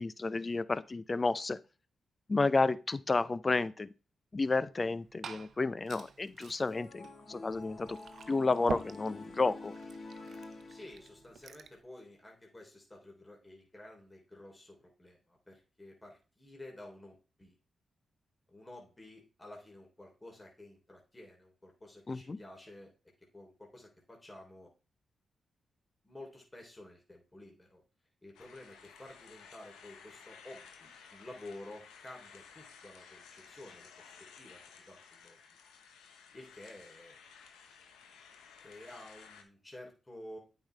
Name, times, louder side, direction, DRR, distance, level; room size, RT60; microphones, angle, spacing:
voice 1, 0.0-1.6 2.3-3.9 4.3-8.0 8.3-9.7 22.1-22.4, left 3 dB, 40° left, 0.6 m, -31 dB
Glass / Fill (with liquid), 4.7-11.8, right 6 dB, 70° right, 0.7 m, -47 dB
sound 1, 6.7-11.3, left 3 dB, 60° left, 1.9 m, -48 dB
voice 2, 10.7-17.6 18.5-22.9 23.3-24.7 26.0-27.8 28.2-35.4 36.3-37.2 38.6-40.4, left 1 dB, 20° left, 3.3 m, -51 dB
sound 2, 28.3-39.4, left 6 dB, 90° left, 1.0 m, -55 dB
8.7 x 5.6 x 3.4 m
supercardioid pair, 45°, 0 cm